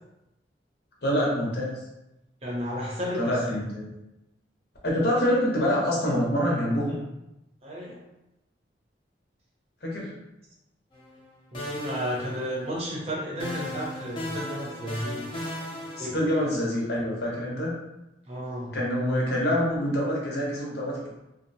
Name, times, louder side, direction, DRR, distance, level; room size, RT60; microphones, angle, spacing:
voice 1, 1.0-1.7 3.2-3.9 4.8-7.0 9.8-10.1 16.0-17.7 18.7-21.1, equal, 65° left, -4 dB, 0.8 m, -26 dB
voice 2, 2.4-3.5 7.6-8.0 11.5-15.3 16.0-16.2 18.3-18.8, equal, 35° right, -5 dB, 0.6 m, -32 dB
sound 1, 10.9-11.3 11.5-13.0 13.4-16.5, left 1 dB, 30° left, 0.6 m, -37 dB
2.7 x 2.0 x 2.7 m, 0.94 s
head